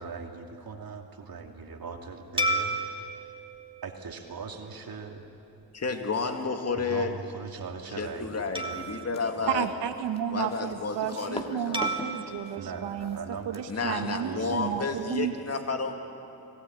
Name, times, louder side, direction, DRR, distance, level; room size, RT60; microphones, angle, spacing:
voice 1, 0.0-3.1 3.8-5.2 6.8-8.9 9.4-9.6 12.5-15.0, right 5 dB, 55° right, 3 dB, 2.6 m, -40 dB
sound 1, 2.4-5.1 5.6-5.8 8.6-10.3 11.7-14.0, right 1 dB, 10° right, 3.0 m, -35 dB
voice 2, 5.7-7.1 8.0-9.7 10.3-12.0 13.7-15.9, left 4 dB, 35° left, 5 dB, 2.3 m, -31 dB
sound 2, 8.5-13.7, left 1 dB, 15° left, 2.3 m, -43 dB
voice 3, 9.5-13.2 13.4-15.4, right 9 dB, 85° right, 8 dB, 1.4 m, -32 dB
25.5 x 17.0 x 9.5 m, 2.7 s
cardioid pair, 70°, 41 cm